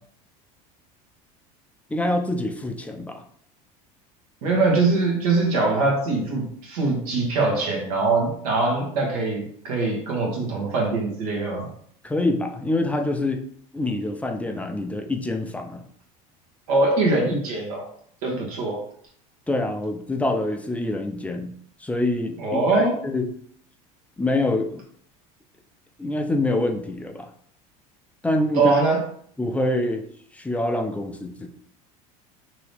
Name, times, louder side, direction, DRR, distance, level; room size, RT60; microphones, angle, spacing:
voice 1, 1.9-3.2 12.0-13.4 13.7-15.8 19.5-21.5 21.8-23.3 24.2-24.8 26.0-27.3 28.2-28.7 29.4-30.0 30.3-31.5, left 2 dB, 5° left, 4 dB, 0.4 m, -25 dB
voice 2, 4.4-11.7 16.7-17.8 18.2-18.8 22.4-23.0 28.5-29.0, right 3 dB, 85° right, -1 dB, 1.1 m, -22 dB
3.0 x 2.7 x 3.2 m, 0.63 s
supercardioid pair, 95°, 18 cm